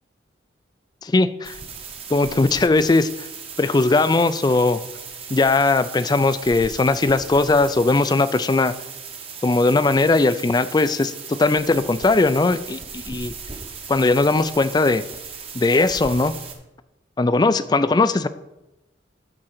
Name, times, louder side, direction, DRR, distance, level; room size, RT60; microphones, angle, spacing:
voice 1, 1.0-1.6 2.1-3.3 3.6-4.8 5.3-8.7 9.4-11.1 11.4-13.3 13.9-15.0 15.5-16.3 17.2-18.3, left 3 dB, 20° left, 13 dB, 0.3 m, -19 dB
sound 1, 1.4-16.5, right 5 dB, 30° right, 0.9 m, -37 dB
9.8 x 3.7 x 6.5 m, 0.94 s
head